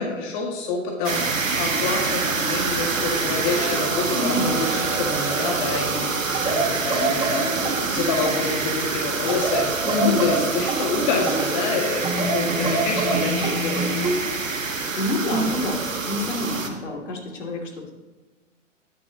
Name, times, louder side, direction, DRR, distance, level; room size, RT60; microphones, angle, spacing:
voice 1, 0.0-13.8, left 3 dB, 40° left, 0 dB, 2.1 m, -27 dB
sound 1, 1.0-16.7, right 4 dB, 90° right, 1.7 m, -26 dB
sound 2, 1.8-13.3 13.8-14.0, right 9 dB, 35° right, 1.1 m, -39 dB
voice 2, 4.1-4.6 9.8-10.4 14.9-17.9, left 2 dB, 70° left, 1 dB, 2.8 m, -27 dB
sound 3, 6.3-8.6 9.3-11.6 12.0-14.2 15.3-15.6, right 3 dB, 15° right, 1.9 m, -26 dB
20.5 x 7.3 x 2.9 m, 1.2 s
figure-of-eight pair, 120°, 38 cm